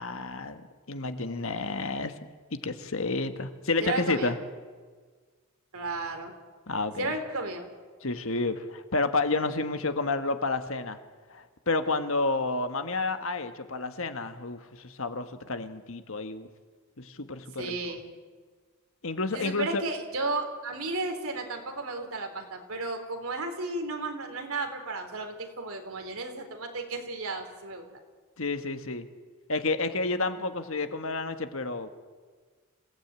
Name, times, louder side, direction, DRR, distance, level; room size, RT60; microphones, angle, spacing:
voice 1, 0.0-2.1 2.5-4.4 6.7-7.1 8.0-11.0 11.3-16.5 17.0-17.8 19.0-19.8 28.4-29.1 29.5-31.9, left 3 dB, 65° left, 8 dB, 1.5 m, -30 dB
voice 2, 3.8-4.3 5.7-6.3 7.0-7.6 17.6-18.0 19.3-27.8, right 3 dB, 70° right, 5 dB, 3.8 m, -33 dB
27.5 x 17.0 x 9.0 m, 1.5 s
head